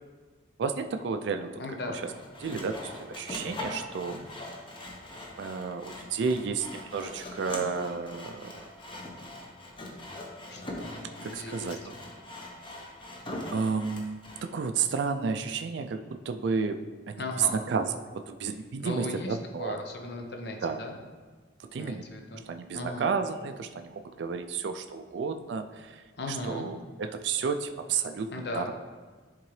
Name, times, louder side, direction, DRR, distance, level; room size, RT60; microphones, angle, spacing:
voice 1, 0.6-1.6 2.4-4.2 5.4-8.6 11.2-11.8 13.5-16.8 17.1-17.2 17.7-17.9 18.1-19.8 20.6-20.8 21.7-22.0 22.5-26.0 26.3-28.6, right 5 dB, 65° right, 8 dB, 0.3 m, -32 dB
voice 2, 1.6-2.0 10.5-11.9 17.2-17.6 18.8-21.0 21.8-22.4 22.7-23.1 26.1-26.7 28.3-28.7, left 2 dB, 60° left, 2 dB, 0.8 m, -37 dB
Sawing, 2.0-14.5, left 1 dB, 25° left, 0.8 m, -41 dB
10.5 x 3.7 x 3.2 m, 1.4 s
head